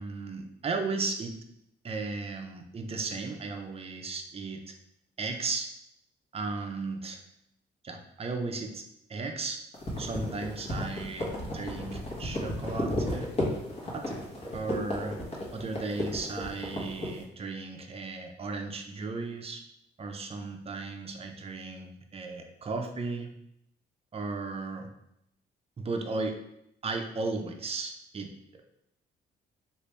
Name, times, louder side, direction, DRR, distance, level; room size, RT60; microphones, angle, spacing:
voice 1, 0.0-1.4 1.8-4.7 5.2-5.7 6.3-7.2 7.8-8.8 9.1-9.6 10.0-13.3 13.9-14.1 14.5-15.2 15.5-19.6 20.0-23.3 24.1-24.9 25.8-26.4 26.8-28.3, right 3 dB, 30° right, 4 dB, 0.5 m, -35 dB
sound 1, 9.7-17.2, left 1 dB, 30° left, 1.1 m, -33 dB
3.2 x 2.5 x 3.3 m, 0.79 s
cardioid pair, 90°, 20 cm